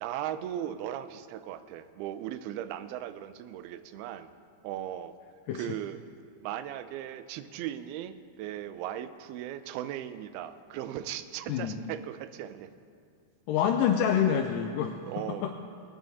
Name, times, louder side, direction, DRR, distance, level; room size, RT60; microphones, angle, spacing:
voice 1, 0.0-4.3 4.6-5.1 5.5-6.0 6.4-12.7 15.1-15.5, right 11 dB, 90° right, 12 dB, 2.5 m, -37 dB
voice 2, 13.5-14.9 15.4-15.5, left 8 dB, 85° left, 5 dB, 1.9 m, -26 dB
21.5 x 9.6 x 2.8 m, 2.3 s
omnidirectional pair, 4.3 m